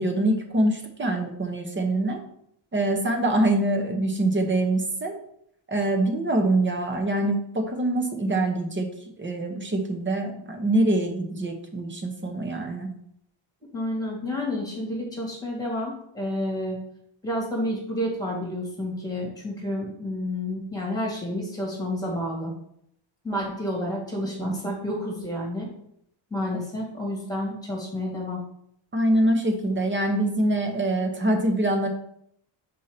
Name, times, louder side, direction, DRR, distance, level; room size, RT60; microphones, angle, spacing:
voice 1, 0.0-2.2 2.7-5.1 5.7-8.9 9.2-12.9 24.4-24.5 28.9-31.9, right 1 dB, 25° right, 4 dB, 0.9 m, -24 dB
voice 2, 13.7-16.8 17.2-22.5 23.2-25.7 26.3-28.4, left 1 dB, 5° left, -2 dB, 2.0 m, -30 dB
5.4 x 4.2 x 5.1 m, 0.72 s
wide cardioid pair, 175°, 49 cm